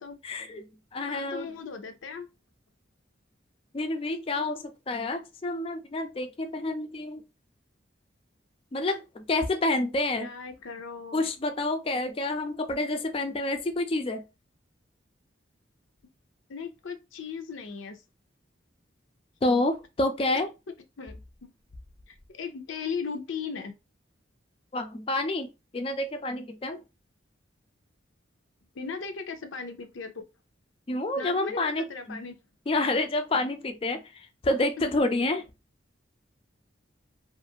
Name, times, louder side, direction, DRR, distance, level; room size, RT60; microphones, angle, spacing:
voice 1, 0.2-1.5 3.7-7.2 8.7-10.3 11.1-14.2 19.4-20.5 24.7-26.8 30.9-32.2 32.7-35.5, left 2 dB, 30° left, 0.3 m, -29 dB
voice 2, 1.1-2.3 10.2-11.3 16.5-18.0 20.7-21.2 21.4-21.5 22.1-23.7 28.7-30.2 31.2-32.4, left 5 dB, 85° left, 0.6 m, -37 dB
2.5 x 2.4 x 2.7 m
head